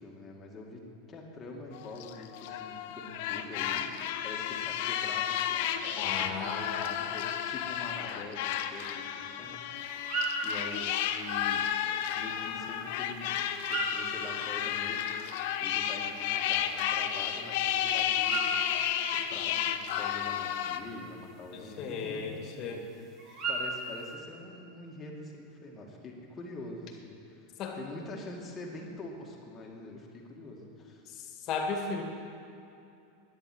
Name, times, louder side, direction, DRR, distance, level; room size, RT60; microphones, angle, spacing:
voice 1, 0.0-3.9 4.2-11.7 12.1-15.2 15.6-18.6 19.1-23.1 23.5-27.5 27.7-31.0, left 2 dB, 25° left, -1 dB, 2.4 m, -45 dB
sound 1, 1.7-20.8, left 10 dB, 65° left, 0.8 m, -32 dB
voice 2, 6.0-7.0 21.5-22.8 27.6-27.8 31.5-32.0, left 5 dB, 40° left, 3 dB, 2.1 m, -35 dB
sound 2, 9.8-24.1, right 2 dB, 35° right, 2.7 m, -40 dB
11.0 x 10.0 x 8.1 m, 2.7 s
supercardioid pair, 130°, 0 cm